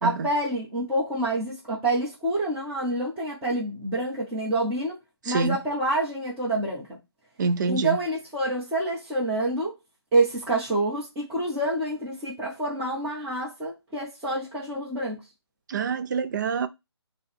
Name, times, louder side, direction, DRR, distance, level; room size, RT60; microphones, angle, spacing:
voice 1, 0.0-5.0 5.2-7.0 7.6-9.8 10.1-15.2, right 2 dB, 10° right, 1.1 m, -27 dB
voice 2, 7.4-8.0 15.7-16.7, right 5 dB, 45° right, 0.4 m, -26 dB
5.2 x 2.2 x 3.4 m
figure-of-eight pair, 150°, 14 cm